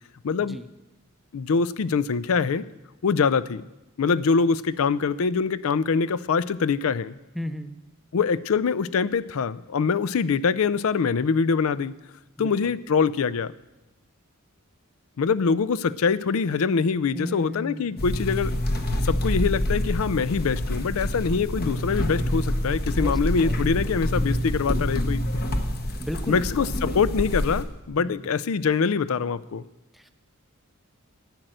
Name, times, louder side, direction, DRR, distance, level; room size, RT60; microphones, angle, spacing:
voice 1, 0.2-0.6 1.3-2.6 3.0-3.6 4.0-7.1 8.1-11.9 12.4-13.5 15.2-18.5 19.0-25.2 26.3-29.6, left 5 dB, 70° left, 17 dB, 0.4 m, -24 dB
voice 2, 7.3-7.8 12.4-12.7 17.1-18.0 23.0-24.5 26.0-27.0 28.0-28.2 29.9-30.1, equal, ahead, 9 dB, 0.5 m, -36 dB
sound 1, 18.0-27.6, left 1 dB, 45° left, 1.1 m, -27 dB
11.5 x 9.0 x 7.8 m, 0.99 s
head